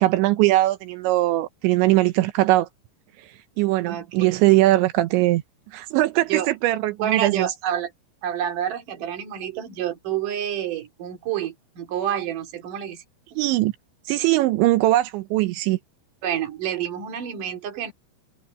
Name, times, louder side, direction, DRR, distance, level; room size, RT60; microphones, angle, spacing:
voice 1, 0.0-2.7 3.6-5.4 5.7-7.5 13.4-13.7 14.1-15.8, right 17 dB, 85° right, 3.2 m, -20 dB
voice 2, 3.9-4.4 6.3-6.5 7.0-7.9 8.2-13.0 13.3-13.4 16.2-17.9, right 10 dB, 50° right, 3.7 m, -28 dB
omnidirectional pair, 5.3 m